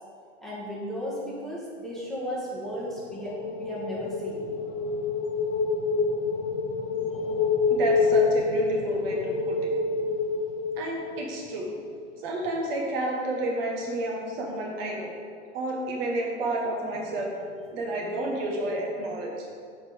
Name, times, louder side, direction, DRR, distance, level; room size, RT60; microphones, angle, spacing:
voice 1, 0.4-4.5, equal, ahead, -7 dB, 1.7 m, -35 dB
sound 1, 2.5-11.5, left 4 dB, 30° left, 0.9 m, -27 dB
voice 2, 7.8-9.7 10.8-11.7 12.2-15.1 15.5-17.3 17.7-19.5, right 1 dB, 50° right, -1 dB, 1.6 m, -30 dB
8.1 x 4.4 x 5.2 m, 2.2 s
hypercardioid pair, 125°, 37 cm